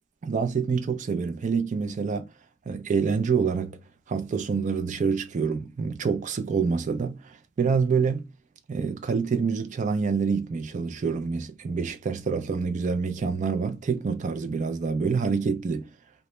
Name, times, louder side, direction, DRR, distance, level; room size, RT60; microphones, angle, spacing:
voice 1, 0.2-2.3 2.7-3.8 4.1-8.3 8.7-15.9, right 5 dB, 40° right, 0.3 m, -27 dB
2.1 x 2.0 x 3.0 m
head